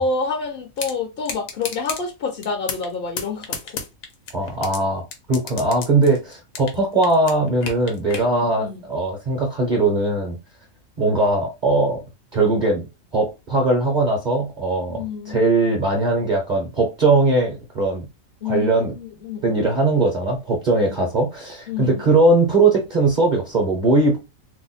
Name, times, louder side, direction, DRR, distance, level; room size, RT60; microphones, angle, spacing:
voice 1, 0.0-3.8 8.3-8.8 14.9-15.4 18.4-19.5 20.9-21.0 21.7-22.0, left 4 dB, 50° left, 0.7 m, -28 dB
sound 1, 0.8-0.9 1.3-2.0 2.4-2.9 3.2-4.8 5.1-6.8 7.0-8.3, left 5 dB, 80° left, 1.2 m, -31 dB
voice 2, 4.3-10.4 11.0-12.0 12.3-12.8 13.1-18.1 18.4-18.9 19.4-24.2, right 2 dB, 40° right, 0.8 m, -20 dB
2.8 x 2.1 x 3.9 m
omnidirectional pair, 1.4 m